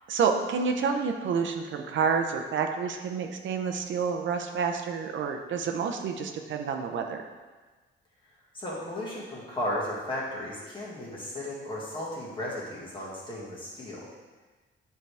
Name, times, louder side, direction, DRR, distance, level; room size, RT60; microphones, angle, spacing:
voice 1, 0.1-7.2, right 6 dB, 70° right, 4 dB, 0.6 m, -29 dB
voice 2, 8.5-14.1, left 1 dB, 25° left, -5 dB, 1.7 m, -35 dB
9.3 x 4.7 x 3.4 m, 1.3 s
cardioid pair, 165°, 20 cm